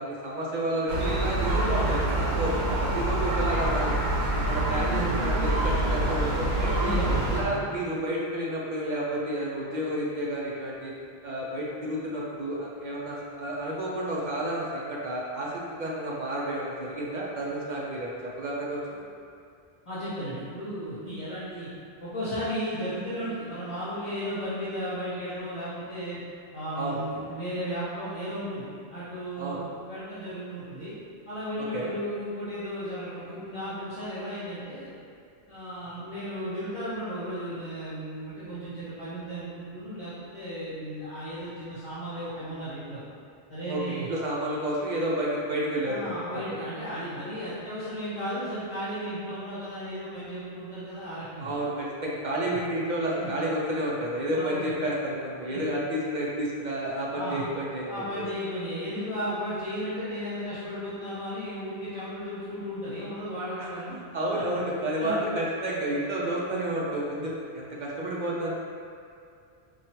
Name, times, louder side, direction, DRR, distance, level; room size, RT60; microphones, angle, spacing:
voice 1, 0.0-4.0 4.3-7.0 7.3-10.9 11.2-19.0 26.8-27.0 29.4-29.6 31.7-31.9 36.0-36.1 43.7-46.4 51.4-58.3 63.6-63.7 64.1-68.5, right 1 dB, 55° right, -5 dB, 0.6 m, -30 dB
Gull seagull, 0.9-7.4, right 1 dB, 75° right, 0.9 m, -26 dB
voice 2, 4.9-5.2 6.7-7.6 19.8-21.7 22.0-26.2 26.5-30.9 31.3-34.9 35.5-43.0 43.5-44.1 45.8-51.5 53.2-53.3 54.3-54.7 55.4-55.6 57.1-57.4 57.9-64.0 64.5-64.6 65.0-65.1, equal, 30° left, -12 dB, 0.9 m, -34 dB
4.5 x 2.3 x 2.9 m, 2.4 s
omnidirectional pair, 1.1 m